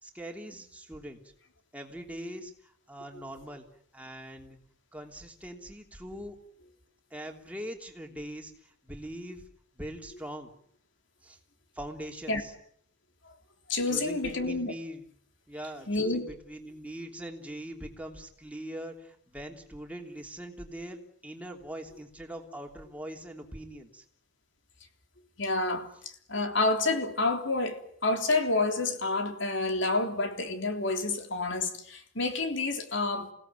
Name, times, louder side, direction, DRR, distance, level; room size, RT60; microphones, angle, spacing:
voice 1, 0.0-1.2 1.7-3.7 3.9-4.6 4.9-6.4 7.1-9.4 9.7-10.5 11.2-11.4 11.7-12.5 13.9-15.0 15.5-24.0, right 1 dB, 5° right, 3.2 m, -42 dB
voice 2, 13.7-14.7 15.9-16.3 25.4-25.9 26.3-33.3, left 3 dB, 60° left, 3.3 m, -29 dB
28.5 x 18.0 x 9.2 m
head